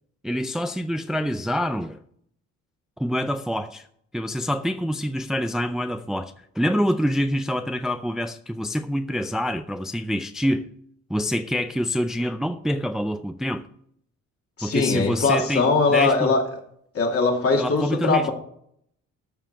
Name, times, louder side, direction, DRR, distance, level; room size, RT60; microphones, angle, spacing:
voice 1, 0.2-2.0 3.0-3.9 4.1-10.7 11.1-13.7 14.6-16.3 17.5-18.3, equal, ahead, 0.4 m, -26 dB
voice 2, 14.6-16.4 16.9-18.3, left 4 dB, 50° left, 2.7 m, -21 dB
13.5 x 4.9 x 5.8 m
cardioid pair, 90°, 30 cm